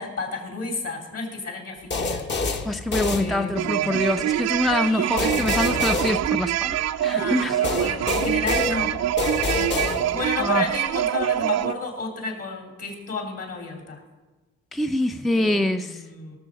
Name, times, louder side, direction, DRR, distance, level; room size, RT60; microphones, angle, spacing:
voice 1, 0.0-2.2 3.1-4.0 4.8-5.4 7.1-9.0 9.5-14.0 15.3-16.4, left 4 dB, 55° left, 2 dB, 3.3 m, -32 dB
sound 1, 1.9-3.8 5.2-6.9 7.6-10.4, left 3 dB, 35° left, 1.1 m, -28 dB
voice 2, 2.7-7.6 10.4-10.7 14.7-16.0, left 1 dB, ahead, 7 dB, 0.5 m, -25 dB
sound 2, 3.6-11.7, right 12 dB, 60° right, 0.5 m, -25 dB
18.0 x 6.8 x 5.1 m, 1.2 s
cardioid pair, 90°, 30 cm